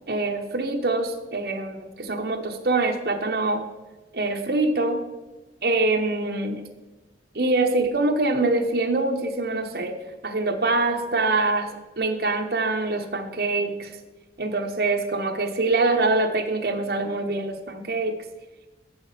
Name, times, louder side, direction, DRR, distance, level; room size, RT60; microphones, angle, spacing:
voice 1, 0.1-3.6 4.1-5.0 5.6-6.6 7.3-10.0 10.2-11.7 12.0-13.9 14.4-18.1, right 2 dB, 60° right, 4 dB, 1.0 m, -24 dB
7.3 x 6.2 x 7.2 m, 1.2 s
head